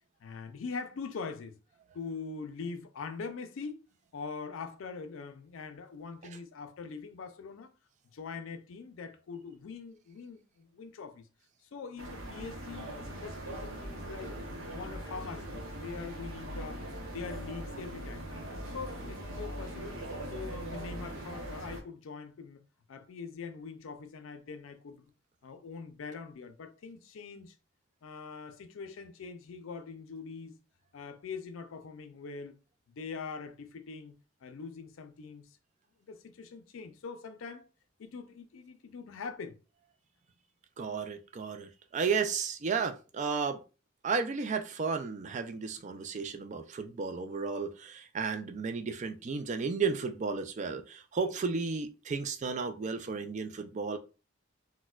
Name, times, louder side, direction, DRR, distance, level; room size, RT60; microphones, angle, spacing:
voice 1, 0.2-1.6 1.9-3.9 4.1-7.7 8.1-11.3 11.6-14.3 14.7-16.9 17.1-18.2 18.7-22.6 22.9-25.1 25.4-27.6 28.0-30.6 30.9-32.6 32.9-34.1 34.4-35.6 36.0-37.7 38.0-39.6, left 5 dB, 75° left, 0.4 m, -43 dB
sound 1, 12.0-21.8, right 1 dB, 90° right, 0.7 m, -41 dB
voice 2, 40.8-43.6 44.0-54.0, right 5 dB, 35° right, 0.3 m, -33 dB
4.1 x 2.1 x 2.3 m
head